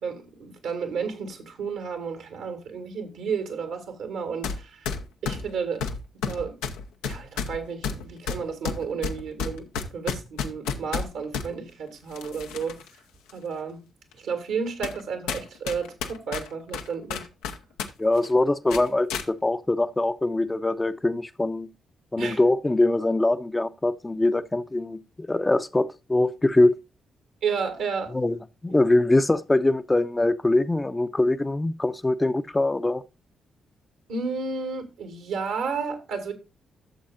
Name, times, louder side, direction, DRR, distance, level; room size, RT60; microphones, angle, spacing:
voice 1, 0.0-4.9 5.2-5.9 6.2-6.6 7.0-12.8 13.3-13.8 14.2-17.3 22.2-22.4 27.4-28.2 34.1-36.3, right 5 dB, 75° right, 2.3 m, -32 dB
sound 1, 4.4-4.6 4.9-11.5 12.1-12.9 13.3-13.4 14.1-14.2 14.8-15.0 15.3-17.9 18.2-18.3 18.7-19.3, left 6 dB, 80° left, 0.9 m, -31 dB
voice 2, 18.0-21.7 22.1-26.7 28.1-28.4 28.6-33.0, left 2 dB, 20° left, 0.7 m, -23 dB
13.0 x 7.1 x 2.5 m
hypercardioid pair, 45°, 0 cm